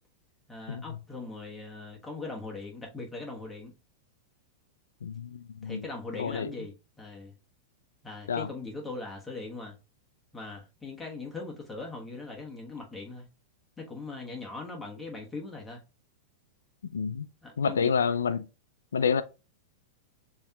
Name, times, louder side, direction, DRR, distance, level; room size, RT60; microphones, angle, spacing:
voice 1, 0.5-3.7 5.6-7.3 8.0-9.7 10.3-13.3 13.8-15.8 17.4-17.9, left 3 dB, 10° left, 1.2 m, -40 dB
voice 2, 5.0-5.9 6.2-6.5 8.3-8.5 16.9-17.2 17.6-18.4 18.9-19.2, left 6 dB, 90° left, 0.3 m, -28 dB
6.7 x 2.8 x 2.3 m
hypercardioid pair, 115°, 0 cm